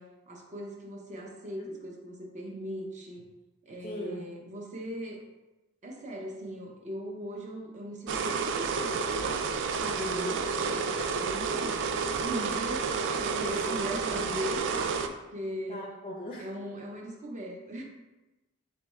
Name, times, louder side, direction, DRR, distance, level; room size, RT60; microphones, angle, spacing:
voice 1, 0.0-3.3 3.6-5.2 5.8-9.4 9.9-11.9 12.1-15.8 16.4-17.8, equal, 35° right, 0 dB, 0.7 m, -39 dB
voice 2, 3.8-4.3 9.8-10.4 13.4-14.4 15.7-16.5, left 1 dB, 25° left, -1 dB, 0.5 m, -40 dB
sound 1, 8.1-15.1, right 5 dB, 55° right, 0.3 m, -30 dB
3.4 x 3.1 x 4.3 m, 1.1 s
head